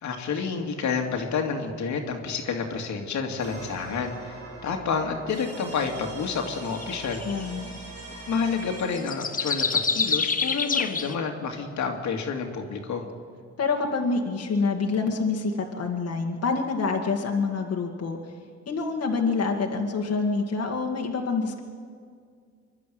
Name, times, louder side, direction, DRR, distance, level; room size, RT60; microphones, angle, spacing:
voice 1, 0.0-7.2 8.3-13.1, left 5 dB, 70° left, 2 dB, 2.4 m, -29 dB
sound 1, 3.4-8.8, right 3 dB, 65° right, 4.9 m, -42 dB
sound 2, 6.8-7.4 9.0-11.1, left 5 dB, 25° left, 1.1 m, -26 dB
voice 2, 7.2-7.7 13.6-18.3 18.7-21.6, left 4 dB, 55° left, 0 dB, 2.1 m, -27 dB
24.5 x 11.5 x 9.4 m, 2.1 s
cardioid pair, 90°, 30 cm